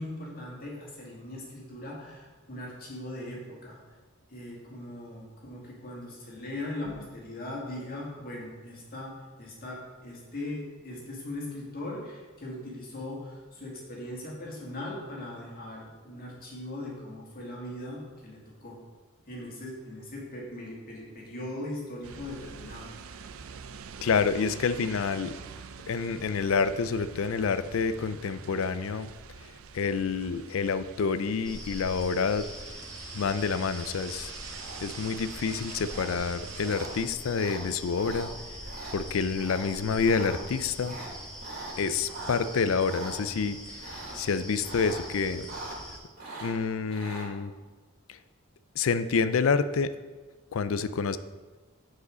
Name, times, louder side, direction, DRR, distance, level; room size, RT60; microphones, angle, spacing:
voice 1, 0.0-3.8 4.3-18.8 19.3-22.9, left 1 dB, 45° left, -3 dB, 2.1 m, -39 dB
sound 1, 22.0-37.1, right 7 dB, 80° right, 0.5 m, -46 dB
voice 2, 24.0-25.3 25.9-29.1 29.7-32.5 33.1-34.3 34.8-38.3 38.9-41.0 41.8-43.6 44.1-45.5 46.4-47.5 48.8-49.9 50.5-51.2, left 5 dB, 70° left, 13 dB, 0.4 m, -28 dB
sound 2, 31.4-46.0, equal, 5° left, 1.3 m, -43 dB
sound 3, 34.5-35.1 35.8-36.1 36.6-36.9 37.3-37.6 37.9-38.2 38.6-38.9 39.4-39.6 39.9-40.4 40.8-42.4 42.8-43.1 43.8-44.3 44.6-45.0 45.3-45.9 46.2-47.3, right 3 dB, 45° right, 2.5 m, -41 dB
6.8 x 4.8 x 6.2 m, 1.3 s
head